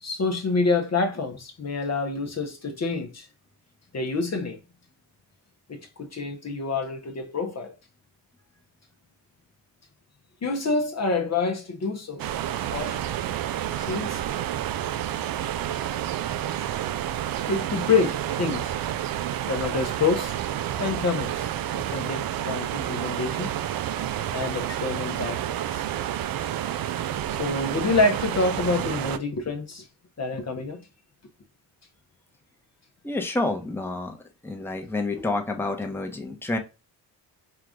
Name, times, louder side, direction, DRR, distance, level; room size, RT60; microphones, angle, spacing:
voice 1, 0.0-3.3 3.9-4.6 5.7-7.7 10.4-13.0 13.8-14.2 17.5-18.7 19.5-20.4 20.8-21.5 21.7-23.5 24.3-25.9 27.3-29.8 30.2-30.8 35.1-35.3, left 3 dB, 35° left, 0.9 m, -27 dB
sound 1, 12.2-29.2, right 11 dB, 55° right, 0.5 m, -29 dB
voice 2, 33.0-34.2 34.4-36.6, left 2 dB, 5° left, 0.9 m, -28 dB
4.7 x 2.4 x 3.6 m
supercardioid pair, 60°, 43 cm